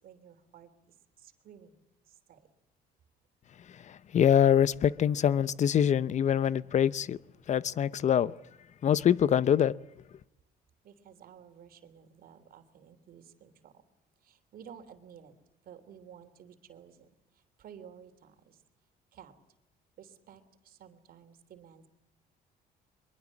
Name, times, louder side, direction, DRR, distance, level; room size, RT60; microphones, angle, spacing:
voice 1, 0.0-1.7 2.1-2.4 10.8-13.7 14.2-15.3 15.6-17.1 17.6-18.6 19.1-19.3 20.0-21.8, right 8 dB, 60° right, 3.3 m, -53 dB
voice 2, 4.1-7.2 7.5-8.3 8.8-9.7, left 9 dB, 45° left, 0.8 m, -24 dB
24.0 x 22.5 x 7.4 m
cardioid pair, 110°, 17 cm